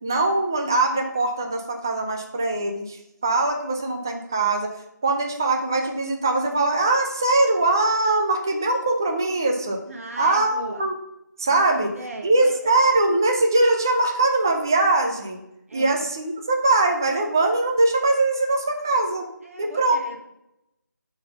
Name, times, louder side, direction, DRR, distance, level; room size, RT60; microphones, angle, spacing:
voice 1, 0.0-4.7 5.0-9.8 10.2-10.9 11.4-11.9 12.2-15.4 15.7-19.3 19.6-20.0, right 2 dB, 10° right, 2 dB, 0.4 m, -22 dB
voice 2, 9.9-10.9 11.5-12.8 15.7-16.0 19.4-20.2, right 2 dB, 45° right, 2 dB, 1.4 m, -38 dB
7.4 x 4.0 x 6.7 m, 0.82 s
figure-of-eight pair, 165°, 10 cm